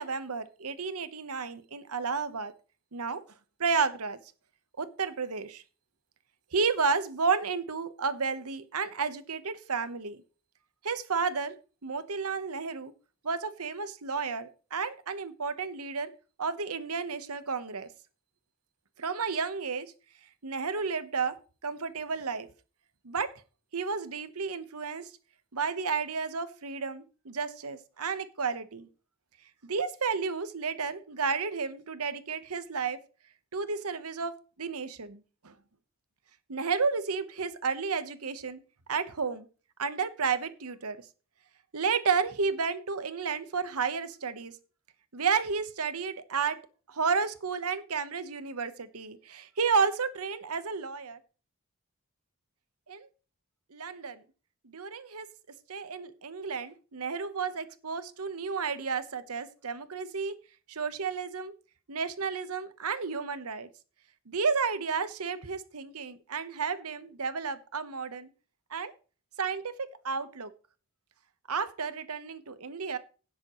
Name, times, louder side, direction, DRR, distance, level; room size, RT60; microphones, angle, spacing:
voice 1, 0.0-2.5 2.9-3.2 3.6-4.2 4.8-5.6 6.5-10.2 10.8-11.5 11.8-12.9 13.2-16.1 16.4-17.9 19.0-19.9 20.4-21.4 21.6-22.5 23.0-23.3 23.7-25.1 25.5-28.9 29.6-33.0 33.5-35.5 36.5-38.6 38.9-39.5 39.8-41.0 41.7-44.5 45.1-46.6 46.9-51.2 52.9-53.1 53.7-54.2 54.6-55.3 55.7-60.3 60.7-61.5 61.9-63.7 64.3-68.3 68.7-68.9 69.4-70.5 71.5-73.0, right 5 dB, 85° right, 12 dB, 1.1 m, -32 dB
17.0 x 7.4 x 3.1 m, 0.36 s
head